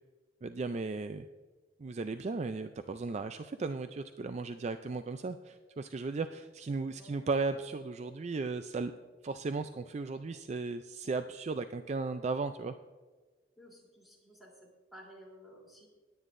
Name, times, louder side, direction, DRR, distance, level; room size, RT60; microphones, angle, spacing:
voice 1, 0.4-1.3 1.8-8.9 9.2-12.7, right 3 dB, 40° right, 9 dB, 0.4 m, -36 dB
voice 2, 13.6-15.9, equal, ahead, -4 dB, 3.3 m, -54 dB
19.5 x 9.3 x 2.6 m, 1.3 s
head